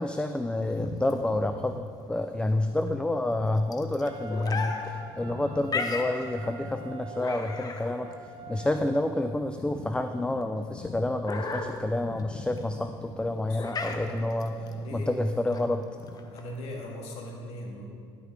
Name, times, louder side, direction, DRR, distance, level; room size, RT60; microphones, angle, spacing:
voice 1, 0.0-8.1 8.5-14.6 14.9-15.9, left 1 dB, 10° left, 7 dB, 0.4 m, -29 dB
sound 1, 0.6-16.6, left 4 dB, 35° left, 0.9 m, -38 dB
Wind instrument woodwind instrument, 4.0-9.2, right 4 dB, 45° right, 1.0 m, -46 dB
voice 2, 13.5-15.1 16.3-17.8, left 1 dB, 65° left, 0 dB, 1.9 m, -40 dB
10.5 x 8.7 x 3.7 m, 2.3 s
supercardioid pair, 75°, 11 cm